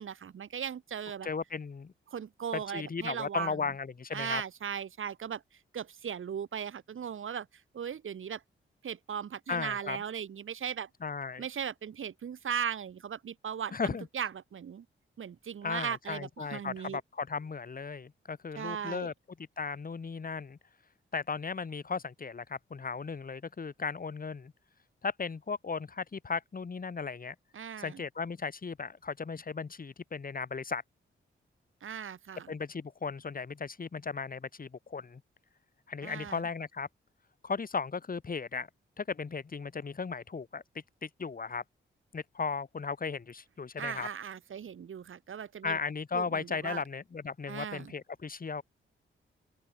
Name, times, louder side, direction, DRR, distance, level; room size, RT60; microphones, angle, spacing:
voice 1, 0.0-1.3 2.1-3.6 4.1-8.4 8.8-10.9 11.4-13.7 14.1-14.9 15.2-17.0 18.6-19.1 27.5-28.0 31.8-32.5 36.0-36.4 43.8-45.8 46.1-46.8 47.5-47.9, right 8 dB, 75° right, 4.0 m, -38 dB
voice 2, 1.2-1.9 2.5-4.4 9.5-10.0 11.0-11.4 13.7-14.1 15.6-19.1 19.6-20.6 21.1-24.5 25.0-27.3 27.8-30.8 32.5-35.2 35.9-36.9 37.4-38.7 39.0-40.6 41.0-41.6 42.1-44.1 45.6-48.6, left 5 dB, 45° left, 3.3 m, -36 dB
open air
cardioid pair, 90°, 21 cm